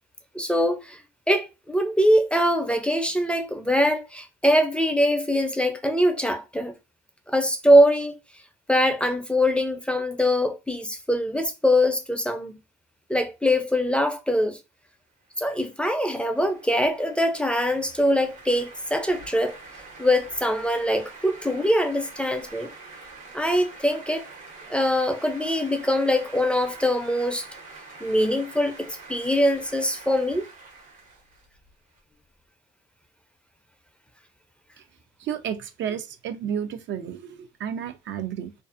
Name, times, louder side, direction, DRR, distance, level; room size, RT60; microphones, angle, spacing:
voice 1, 0.3-1.0 1.3-6.8 7.3-8.2 8.7-12.5 13.1-14.6 15.4-19.6 20.0-22.7 23.3-24.2 24.7-27.5 28.0-30.5, equal, 5° left, 0.4 m, -23 dB
sound 1, 15.3-32.0, right 3 dB, 85° right, 1.3 m, -45 dB
voice 2, 35.2-38.5, right 8 dB, 70° right, 0.4 m, -32 dB
2.5 x 2.3 x 2.4 m
cardioid pair, 90°, 20 cm